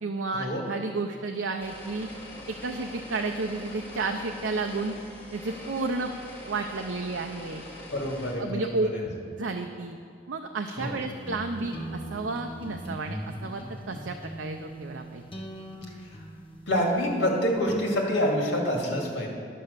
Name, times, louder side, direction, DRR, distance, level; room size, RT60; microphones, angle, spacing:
voice 1, 0.0-2.1 2.5-4.9 5.3-6.1 6.4-7.6 8.4-8.9 9.4-10.0 10.3-15.2, right 3 dB, 85° right, 4 dB, 0.6 m, -32 dB
sound 1, 1.6-8.3, left 1 dB, 10° left, 2.0 m, -43 dB
voice 2, 7.9-9.0 10.8-10.9 16.7-19.3, equal, 70° left, -1 dB, 2.3 m, -27 dB
sound 2, 10.8-18.0, equal, 30° left, 1.1 m, -40 dB
10.5 x 7.7 x 6.7 m, 2.5 s
head